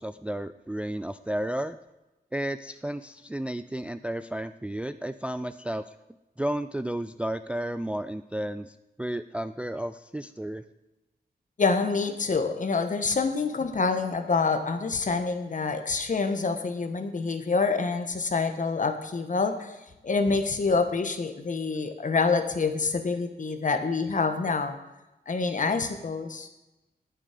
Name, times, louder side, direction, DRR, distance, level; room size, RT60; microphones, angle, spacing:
voice 1, 0.0-1.8 2.3-5.8 6.4-10.6, right 1 dB, 5° right, 12 dB, 0.3 m, -32 dB
voice 2, 11.6-19.8 20.0-24.8 25.3-26.5, left 4 dB, 50° left, 8 dB, 1.3 m, -27 dB
19.0 x 7.4 x 5.0 m, 1.0 s
wide cardioid pair, 160°, 17 cm